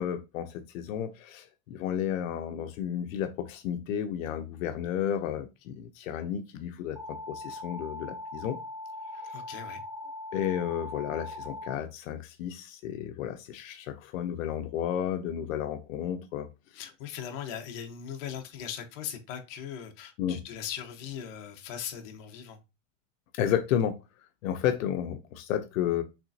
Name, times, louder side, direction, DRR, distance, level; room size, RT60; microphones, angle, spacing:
voice 1, 0.0-8.6 9.2-9.4 10.3-16.5 20.2-20.4 23.3-24.0 24.4-26.0, left 9 dB, 80° left, 0.7 m, -32 dB
sound 1, 7.0-11.7, left 1 dB, 5° right, 0.3 m, -40 dB
voice 2, 9.3-9.8 16.7-22.6, left 9 dB, 45° left, 1.0 m, -39 dB
6.0 x 3.3 x 2.7 m
supercardioid pair, 165°, 39 cm